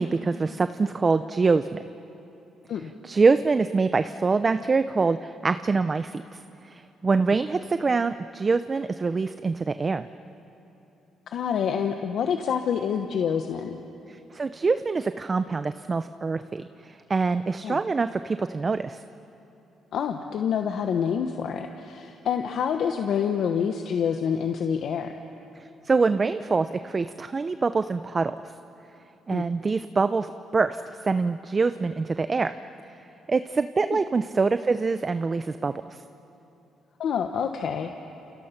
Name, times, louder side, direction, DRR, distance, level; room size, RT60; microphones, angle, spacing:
voice 1, 0.0-1.8 3.0-6.4 6.6-10.1 14.1-19.0 25.6-28.5 29.3-32.5 33.3-36.0, right 4 dB, 30° right, 11 dB, 0.6 m, -25 dB
voice 2, 11.3-13.8 17.6-17.8 19.9-25.2 29.3-29.5 37.0-38.0, left 7 dB, 70° left, 5 dB, 1.2 m, -27 dB
30.0 x 28.5 x 5.9 m, 2.9 s
cardioid pair, 90°, 0 cm